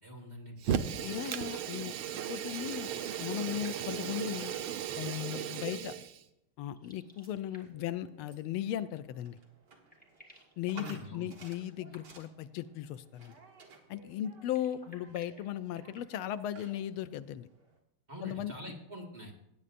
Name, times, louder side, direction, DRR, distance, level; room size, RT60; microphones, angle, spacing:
voice 1, 0.0-1.0 10.7-11.3 18.1-19.3, equal, 20° right, -1 dB, 1.7 m, -45 dB
Fire, 0.6-6.2, right 9 dB, 80° right, 1.6 m, -36 dB
voice 2, 1.0-2.9 3.2-4.5 5.0-5.9 6.6-9.4 10.6-13.3 13.9-17.5 18.2-18.5, left 11 dB, 80° left, 13 dB, 1.4 m, -37 dB
sound 1, 2.7-5.0 6.7-7.9 9.3-9.4 9.6-10.6 11.4-12.4 14.3-16.5, left 1 dB, 5° left, 1.5 m, -60 dB
sound 2, 6.8-17.8, right 4 dB, 55° right, 2.2 m, -57 dB
17.5 x 9.6 x 2.5 m, 0.83 s
omnidirectional pair, 2.3 m